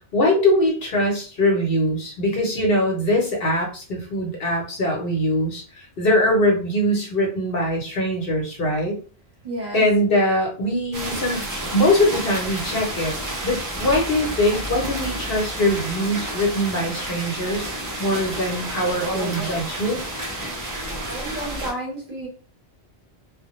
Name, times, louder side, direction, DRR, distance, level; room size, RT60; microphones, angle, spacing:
voice 1, 0.1-9.0 9.7-11.5 11.7-13.1 13.4-20.0, left 1 dB, 60° left, 0 dB, 0.9 m, -22 dB
voice 2, 9.4-9.8 21.1-22.3, right 1 dB, 45° right, -2 dB, 0.7 m, -31 dB
sound 1, 10.9-21.7, right 1 dB, 30° right, 0.4 m, -30 dB
2.1 x 2.0 x 2.9 m, 0.37 s
omnidirectional pair, 1.1 m